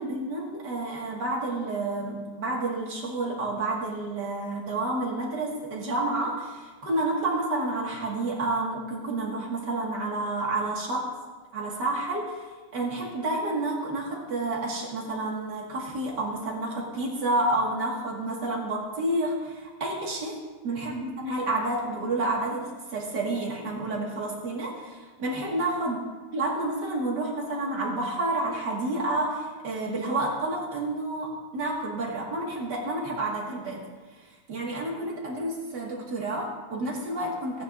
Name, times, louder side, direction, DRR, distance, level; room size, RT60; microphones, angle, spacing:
voice 1, 0.0-11.1 11.5-12.4 12.7-20.4 20.6-26.0 26.3-33.8 34.5-37.6, right 2 dB, 90° right, -3 dB, 2.6 m, -29 dB
17.5 x 9.1 x 2.6 m, 1.3 s
omnidirectional pair, 1.8 m